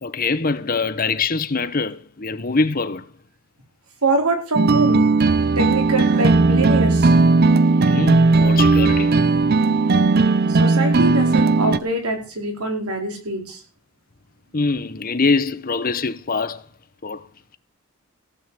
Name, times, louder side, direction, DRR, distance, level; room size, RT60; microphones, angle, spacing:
voice 1, 0.0-3.1 7.8-9.2 14.5-16.6 17.0-17.2, left 4 dB, 40° left, 0.9 m, -23 dB
voice 2, 4.0-5.0 5.6-7.1 10.5-13.6, right 2 dB, 85° right, 4.6 m, -24 dB
sound 1, 4.5-11.8, right 3 dB, 45° right, 0.5 m, -16 dB
16.0 x 5.7 x 8.4 m
head